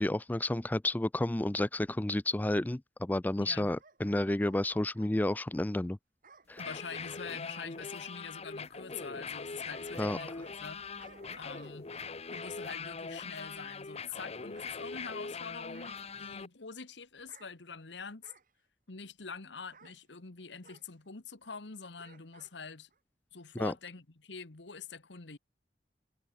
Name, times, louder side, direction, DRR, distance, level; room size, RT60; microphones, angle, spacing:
voice 1, 0.0-6.0 6.5-6.6 10.0-10.2 23.6-23.7, left 1 dB, 10° left, 0.4 m, -31 dB
voice 2, 3.4-3.7 6.6-10.8 11.3-11.9 12.3-18.3 18.9-22.9 23.3-25.4, left 5 dB, 75° left, 1.4 m, -45 dB
Bark / Growling, 3.5-5.2 6.2-7.7 9.3-10.7 11.0-12.6 13.3-13.7 14.5-15.3 15.7-16.1 17.2-17.5 18.2-18.5 19.7-20.0 20.6-20.9 22.0-22.5 22.9-23.0, right 5 dB, 50° right, 6.7 m, -58 dB
sound 1, 6.5-16.5, left 4 dB, 35° left, 0.9 m, -42 dB
head